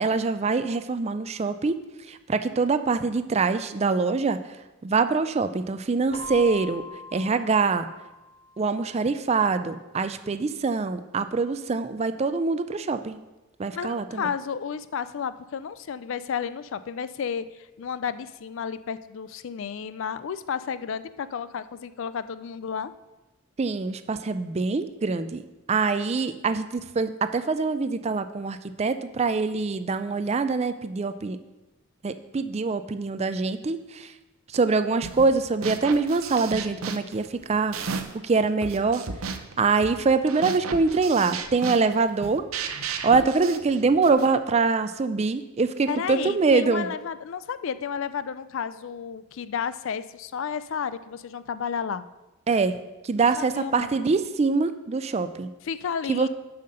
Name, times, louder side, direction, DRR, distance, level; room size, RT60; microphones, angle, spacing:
voice 1, 0.0-1.8 2.1-4.6 4.8-6.8 7.1-7.9 8.6-13.2 13.6-14.2 23.6-25.4 25.7-31.4 32.0-34.1 34.5-37.8 38.2-42.4 42.8-46.9 52.5-52.8 53.0-55.5 56.1-56.3, right 4 dB, 30° right, 11 dB, 0.3 m, -24 dB
Keyboard (musical), 6.1-8.8, left 2 dB, 25° left, 0.8 m, -41 dB
voice 2, 13.7-22.9 45.9-52.0 53.2-53.9 55.6-56.3, left 7 dB, 60° left, 14 dB, 0.3 m, -32 dB
sound 1, 35.0-35.3 35.6-38.3 38.6-44.3, right 5 dB, 65° right, 0.7 m, -34 dB
7.4 x 5.8 x 6.6 m, 1.0 s
head